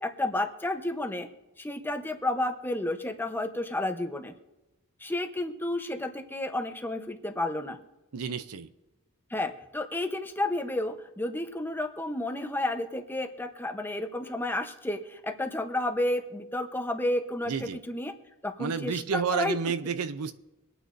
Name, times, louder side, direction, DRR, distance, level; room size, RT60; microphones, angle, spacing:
voice 1, 0.0-1.3 1.6-4.3 5.0-7.8 9.3-18.1 18.4-19.6, left 1 dB, 10° left, 6 dB, 0.8 m, -31 dB
voice 2, 8.1-8.7 17.5-17.8 18.6-20.4, right 6 dB, 75° right, 13 dB, 0.6 m, -31 dB
24.5 x 9.3 x 2.6 m, 1.0 s
head